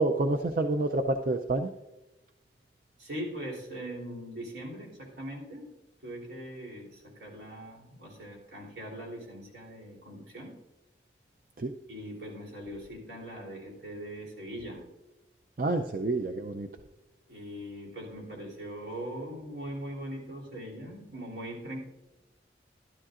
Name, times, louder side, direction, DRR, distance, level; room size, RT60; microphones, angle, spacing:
voice 1, 0.0-1.7 11.6-11.7 15.6-16.7, right 2 dB, 50° right, 5 dB, 0.5 m, -28 dB
voice 2, 3.0-5.7 6.0-10.5 11.9-14.8 17.3-21.8, equal, 80° right, -2 dB, 3.3 m, -41 dB
12.5 x 12.0 x 2.5 m, 1.0 s
head